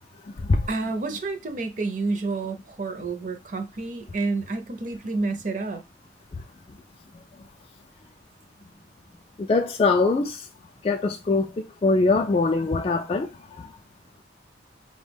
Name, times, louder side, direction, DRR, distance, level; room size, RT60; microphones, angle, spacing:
voice 1, 0.7-5.8, right 3 dB, 45° right, 0.5 m, -29 dB
voice 2, 9.5-10.4 10.8-11.5 11.8-13.3, left 3 dB, 30° left, 0.3 m, -22 dB
5.3 x 2.1 x 3.4 m
head